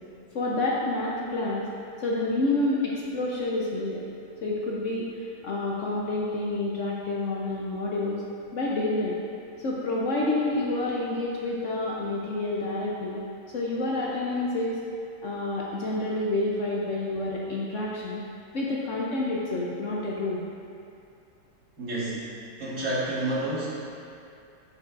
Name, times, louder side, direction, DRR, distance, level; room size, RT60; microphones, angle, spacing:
voice 1, 0.3-1.7 2.0-4.0 4.4-5.1 5.4-8.2 8.5-9.2 9.6-13.2 13.5-14.8 15.2-18.2 18.5-20.5, left 2 dB, 60° left, -4 dB, 0.8 m, -28 dB
voice 2, 21.8-22.3 22.6-23.7, right 1 dB, 45° right, -9 dB, 2.1 m, -29 dB
8.9 x 7.0 x 2.5 m, 2.6 s
omnidirectional pair, 1.9 m